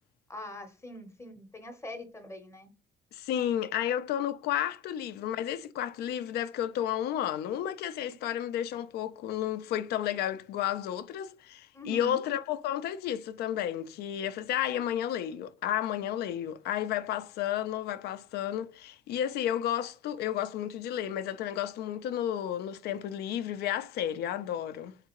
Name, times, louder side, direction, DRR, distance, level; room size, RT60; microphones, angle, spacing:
voice 1, 0.3-2.7 11.7-12.2, left 1 dB, 15° left, 0.8 m, -43 dB
voice 2, 3.1-25.0, left 11 dB, 70° left, 0.4 m, -32 dB
3.7 x 3.3 x 2.9 m
cardioid pair, 110°, 17 cm